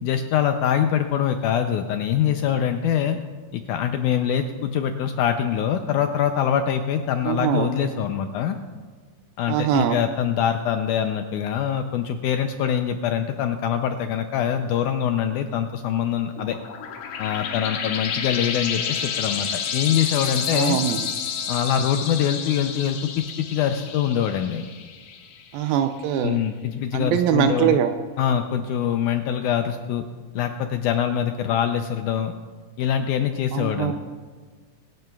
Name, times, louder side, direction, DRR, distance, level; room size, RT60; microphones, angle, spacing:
voice 1, 0.0-3.2 3.5-8.6 9.4-16.6 17.2-20.8 21.5-24.6 26.2-27.8 28.2-30.0 30.4-32.3 32.8-33.9, left 9 dB, 90° left, 6 dB, 1.7 m, -24 dB
voice 2, 7.2-7.7 9.5-10.0 20.5-21.1 25.5-26.4 26.9-27.9 33.5-33.9, right 10 dB, 85° right, 7 dB, 2.4 m, -22 dB
sound 1, 16.4-25.6, left 7 dB, 75° left, 2.5 m, -30 dB
25.0 x 10.5 x 2.3 m, 1.5 s
omnidirectional pair, 4.2 m